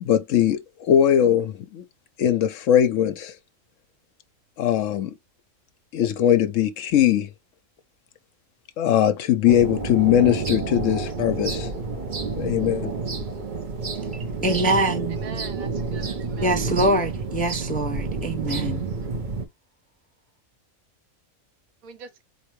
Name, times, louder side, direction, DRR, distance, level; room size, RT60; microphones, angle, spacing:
voice 1, 0.0-1.8 2.2-3.3 4.6-5.1 5.9-7.3 8.8-11.7 12.4-12.9, left 10 dB, 70° left, 0.9 m, -20 dB
sound 1, 9.5-19.5, right 4 dB, 40° right, 0.8 m, -29 dB
voice 2, 14.4-15.2 16.4-18.8, right 1 dB, 10° left, 0.4 m, -24 dB
voice 3, 15.1-16.6 21.8-22.2, right 5 dB, 80° right, 1.2 m, -41 dB
4.4 x 2.7 x 3.0 m
omnidirectional pair, 1.5 m